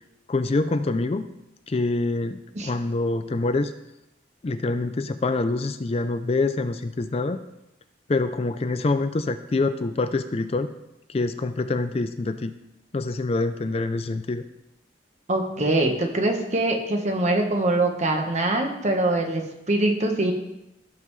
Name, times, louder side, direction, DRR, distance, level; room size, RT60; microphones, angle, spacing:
voice 1, 0.3-1.3 1.7-3.7 4.4-7.4 8.1-10.7 11.1-12.5 12.9-14.4, left 3 dB, 35° left, 10 dB, 0.4 m, -25 dB
voice 2, 15.3-19.4 19.7-20.3, right 2 dB, 40° right, 3 dB, 1.3 m, -23 dB
16.5 x 5.6 x 3.2 m, 0.89 s
head